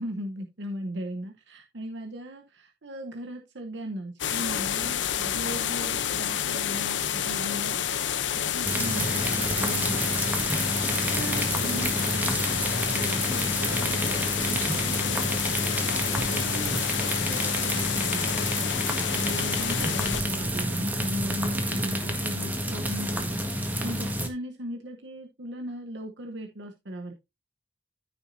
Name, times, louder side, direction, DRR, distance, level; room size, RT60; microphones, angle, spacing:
voice 1, 0.0-7.8 8.5-10.1 11.0-14.1 14.4-15.6 16.1-18.6 19.1-23.4 23.8-27.1, equal, 70° right, 4 dB, 1.0 m, -38 dB
sound 1, 4.2-20.2, left 9 dB, 75° left, 0.7 m, -29 dB
sound 2, 8.6-24.3, right 1 dB, 10° right, 1.6 m, -29 dB
13.5 x 6.1 x 2.7 m, 0.24 s
head